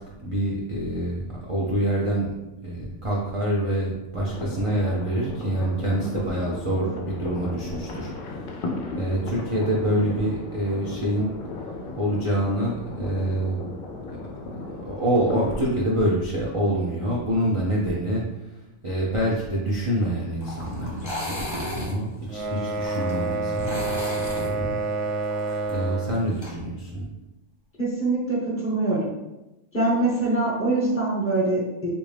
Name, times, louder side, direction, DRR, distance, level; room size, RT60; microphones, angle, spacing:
voice 1, 0.2-1.2 1.5-2.3 2.6-8.6 9.0-11.3 12.0-13.6 14.1-14.2 14.8-24.8 25.7-27.1, right 1 dB, 45° right, -5 dB, 0.4 m, -26 dB
sound 1, 4.2-15.8, left 2 dB, 60° left, 0.6 m, -35 dB
sound 2, 20.4-26.5, left 1 dB, 25° left, 0.7 m, -36 dB
sound 3, 22.3-26.2, right 3 dB, 65° right, 0.8 m, -28 dB
voice 2, 27.8-28.4 28.6-29.1 29.7-31.9, right 2 dB, 10° left, -6 dB, 1.1 m, -23 dB
3.6 x 2.5 x 3.3 m, 0.96 s
omnidirectional pair, 1.3 m